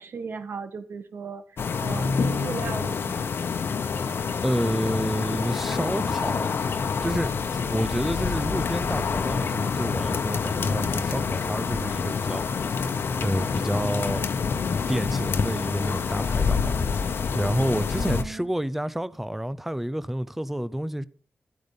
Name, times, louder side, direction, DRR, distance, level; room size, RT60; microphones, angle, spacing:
voice 1, 0.0-3.2 4.7-4.8 17.9-18.5, right 5 dB, 65° right, 1.7 m, -36 dB
sound 1, 1.6-18.2, left 5 dB, 75° left, 1.1 m, -27 dB
voice 2, 4.1-6.6 7.0-7.3 7.7-12.4 13.2-14.2 14.9-16.8 17.3-21.0, equal, 5° right, 0.6 m, -29 dB
12.5 x 9.3 x 5.2 m
wide cardioid pair, 130°, 4 cm